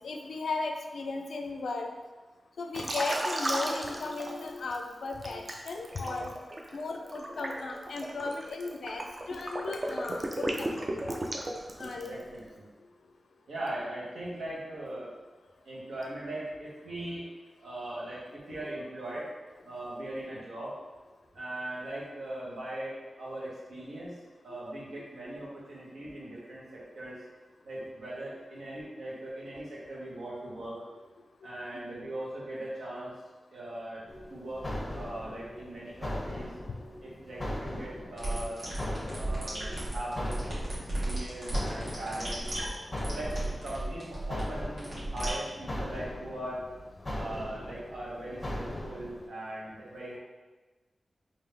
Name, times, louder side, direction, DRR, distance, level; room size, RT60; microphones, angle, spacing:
voice 1, 0.0-1.9 2.6-6.3 6.7-11.0 11.8-12.2 24.5-24.6 31.7-31.8, left 3 dB, 90° left, 3 dB, 0.4 m, -36 dB
Liquid, 2.7-4.8 5.2-12.2, right 1 dB, 35° right, 0.5 m, -34 dB
voice 2, 12.0-12.7 13.5-15.1 15.6-17.3 17.6-19.3 19.6-20.8 21.3-24.2 24.4-27.2 27.6-30.8 31.4-33.2 33.5-34.7 34.9-36.5 37.0-38.6 39.1-40.4 40.7-42.4 43.1-46.6 47.1-50.2, right 1 dB, 85° right, -6 dB, 1.2 m, -40 dB
sound 1, 34.1-49.3, left 1 dB, 25° left, 0.5 m, -39 dB
sound 2, 38.2-45.3, right 1 dB, 65° right, 1.4 m, -34 dB
3.8 x 2.7 x 3.3 m, 1.2 s
wide cardioid pair, 95°, 0 cm